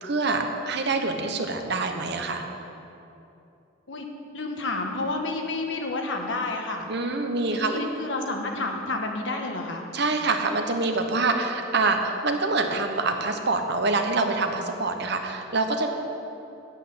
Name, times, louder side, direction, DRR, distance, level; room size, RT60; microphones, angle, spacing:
voice 1, 0.0-2.4 6.9-7.8 9.9-15.9, right 3 dB, 60° right, 5 dB, 1.0 m, -25 dB
voice 2, 4.3-6.9 7.5-9.8, left 2 dB, 70° left, 2 dB, 1.3 m, -30 dB
8.2 x 8.0 x 8.7 m, 2.9 s
head